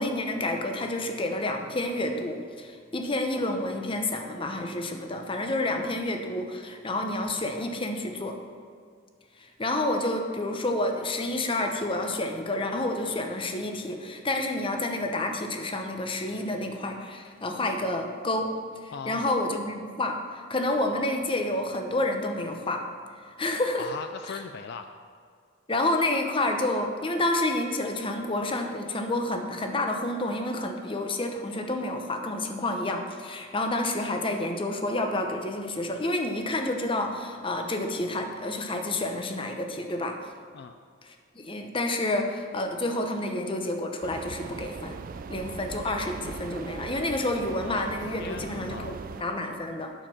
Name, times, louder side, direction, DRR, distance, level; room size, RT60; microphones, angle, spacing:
voice 1, 0.0-8.4 9.4-18.5 18.8-22.8 23.4-23.9 25.7-40.2 41.3-45.0 45.3-49.9, left 1 dB, 25° left, 4 dB, 0.8 m, -29 dB
voice 2, 18.9-19.3 23.8-24.9 40.5-40.7 48.2-49.0, left 5 dB, 55° left, 7 dB, 0.4 m, -38 dB
sound 1, 44.0-49.2, right 5 dB, 45° right, 0.3 m, -39 dB
9.1 x 6.6 x 5.7 m, 2.1 s
head